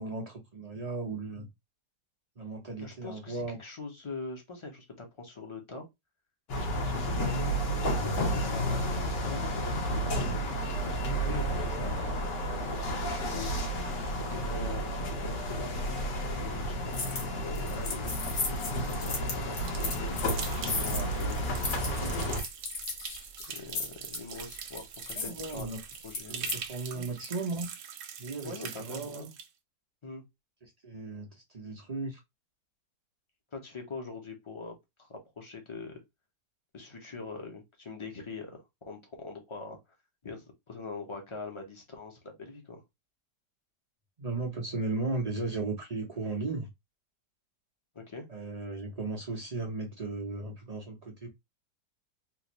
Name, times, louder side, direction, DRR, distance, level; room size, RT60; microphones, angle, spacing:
voice 1, 0.0-1.5 2.4-3.6 25.1-25.8 26.3-27.7 28.2-29.2 30.6-32.2 44.2-46.7 48.3-51.3, right 3 dB, 60° right, 0.4 m, -36 dB
voice 2, 2.8-5.9 6.5-12.2 12.7-13.5 14.1-15.7 16.4-20.4 20.6-22.3 23.5-25.7 26.0-26.5 26.9-27.1 28.4-29.3 30.0-30.2 33.5-36.0 36.7-39.8 40.2-42.8 47.9-48.3, left 3 dB, 25° left, 0.6 m, -43 dB
sound 1, 6.5-22.4, equal, 80° left, 1.8 m, -31 dB
sound 2, 16.9-17.3 17.5-26.6, left 3 dB, 50° left, 1.4 m, -37 dB
sound 3, 19.5-29.5, right 8 dB, 80° right, 1.2 m, -43 dB
3.7 x 2.6 x 3.0 m
omnidirectional pair, 1.8 m